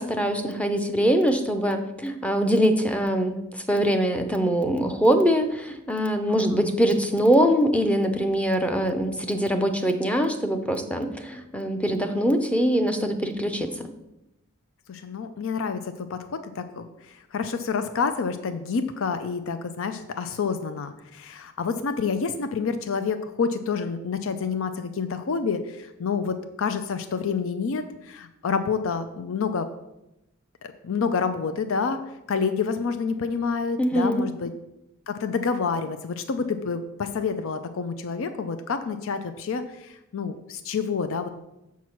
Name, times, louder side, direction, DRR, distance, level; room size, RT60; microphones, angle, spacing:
voice 1, 0.0-3.4 3.7-13.9 33.8-34.2, equal, 5° left, 6 dB, 0.6 m, -23 dB
voice 2, 6.3-6.6 14.9-29.7 30.6-32.0 32.3-34.5 35.1-41.3, left 5 dB, 65° left, 10 dB, 0.5 m, -28 dB
7.0 x 4.7 x 5.8 m, 0.90 s
head